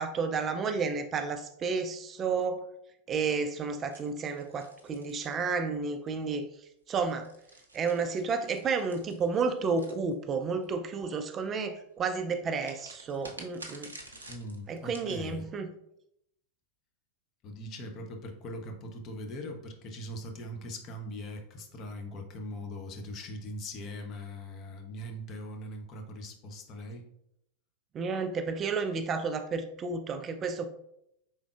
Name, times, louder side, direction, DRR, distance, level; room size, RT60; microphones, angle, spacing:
voice 1, 0.0-2.7 3.1-6.5 6.9-7.3 7.7-13.9 14.7-15.7 27.9-30.7, right 5 dB, 25° right, 8 dB, 0.3 m, -31 dB
sound 1, 3.9-5.9 6.9-10.6 12.6-15.2, right 2 dB, 75° right, 0.5 m, -50 dB
voice 2, 14.3-15.4 17.4-27.1, left 1 dB, 35° left, 4 dB, 0.6 m, -41 dB
4.4 x 3.5 x 2.4 m, 0.78 s
figure-of-eight pair, 90°, 0 cm